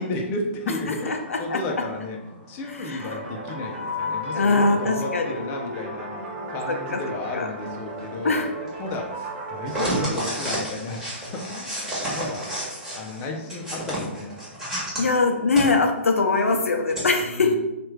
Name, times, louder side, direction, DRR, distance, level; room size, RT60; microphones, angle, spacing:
voice 1, 0.0-11.0 11.3-12.5 12.9-14.3 17.2-17.6, left 2 dB, 30° left, 1 dB, 0.5 m, -33 dB
sound 1, 0.9-3.7 4.2-15.0 15.5-15.6 16.0-16.1 16.5-17.0, right 1 dB, 5° right, 1.3 m, -33 dB
voice 2, 1.1-1.6 2.9-3.0 4.4-5.2 7.3-7.5 8.2-8.5 15.0-17.5, left 3 dB, 85° left, 4 dB, 0.4 m, -21 dB
sound 2, 3.0-10.0, equal, 45° right, 1.0 m, -34 dB
3.1 x 2.4 x 3.2 m, 0.96 s
hypercardioid pair, 125°, 7 cm